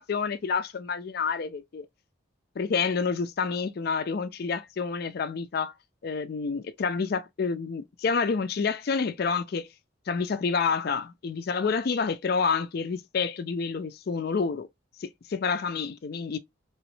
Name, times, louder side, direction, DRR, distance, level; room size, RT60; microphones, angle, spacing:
voice 1, 0.0-1.9 2.6-5.7 6.0-9.7 10.1-14.7 15.0-16.4, left 5 dB, 50° left, 0.4 m, -28 dB
3.0 x 2.9 x 3.1 m
head